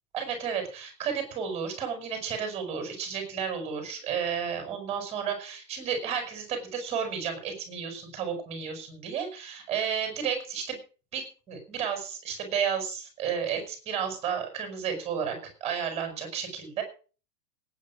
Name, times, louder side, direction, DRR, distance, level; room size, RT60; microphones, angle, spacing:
voice 1, 0.1-10.8 11.1-16.8, right 7 dB, 15° right, 5 dB, 6.3 m, -32 dB
18.0 x 9.6 x 6.2 m, 0.38 s
hypercardioid pair, 175°, 47 cm